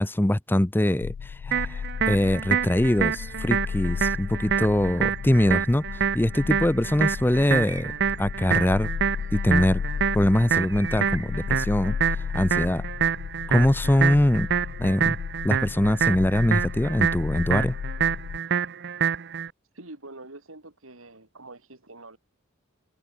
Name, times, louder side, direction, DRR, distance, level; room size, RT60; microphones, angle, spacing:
voice 1, 0.0-7.9 8.2-8.9 9.3-9.8 10.1-12.0 12.3-12.8 13.5-14.5 14.8-15.2 15.4-17.8, left 1 dB, 10° left, 0.6 m, -23 dB
sound 1, 1.0-18.4, left 6 dB, 90° left, 0.4 m, -34 dB
sound 2, 1.5-19.5, right 7 dB, 55° right, 0.8 m, -27 dB
Bird, 5.2-5.7 6.5-7.0 7.6-8.2 10.6-11.6, right 4 dB, 15° right, 1.5 m, -46 dB
voice 2, 19.7-22.2, right 2 dB, 80° right, 4.0 m, -45 dB
head